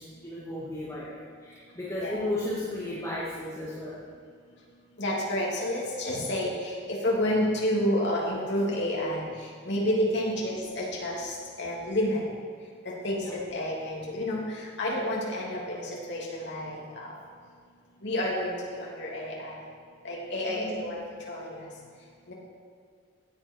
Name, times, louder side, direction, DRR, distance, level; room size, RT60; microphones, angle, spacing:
voice 1, 0.0-4.0 10.4-10.5 13.1-13.4 20.5-20.8, left 1 dB, 15° left, -8 dB, 2.0 m, -35 dB
voice 2, 5.0-9.3 9.6-11.3 11.6-12.2 13.0-16.8 18.0-19.5 20.0-21.0 21.3-21.5 22.3-22.4, left 1 dB, 60° left, -4 dB, 2.9 m, -29 dB
16.0 x 8.4 x 4.6 m, 2.1 s
head